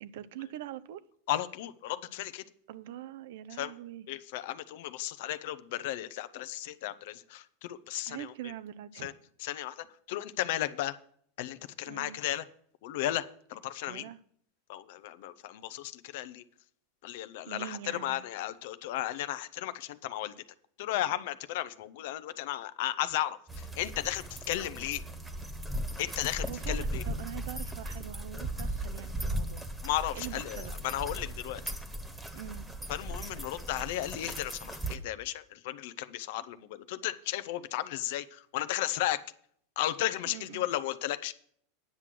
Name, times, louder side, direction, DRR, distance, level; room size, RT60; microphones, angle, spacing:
voice 1, 0.0-1.0 2.7-4.1 8.1-9.1 11.9-12.2 13.9-14.2 17.5-18.2 26.5-29.7 30.1-30.8 32.3-32.7 40.2-40.7, right 11 dB, 70° right, 16 dB, 0.6 m, -43 dB
voice 2, 1.3-2.4 3.6-3.7 4.1-8.3 9.0-9.1 9.4-11.0 11.4-12.4 12.8-14.1 14.7-16.4 17.0-20.3 20.8-25.0 26.0-27.0 29.8-31.6 32.9-39.2 39.8-41.3, left 13 dB, 65° left, 14 dB, 0.6 m, -34 dB
sound 1, 23.5-35.0, right 1 dB, 10° right, 1.4 m, -37 dB
9.7 x 6.0 x 7.6 m, 0.63 s
hypercardioid pair, 105°, 0 cm